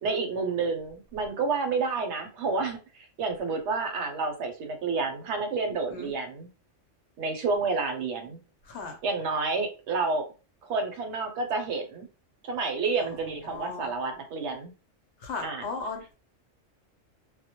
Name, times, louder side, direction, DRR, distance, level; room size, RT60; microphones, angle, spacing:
voice 1, 0.0-6.5 7.2-8.4 9.0-10.3 10.6-12.1 12.4-14.7 15.4-15.6, right 4 dB, 70° right, 0.9 m, -29 dB
voice 2, 8.6-9.0 13.0-13.1 13.4-13.9 15.2-16.1, left 4 dB, 70° left, 0.8 m, -37 dB
2.1 x 2.1 x 2.8 m
omnidirectional pair, 1.3 m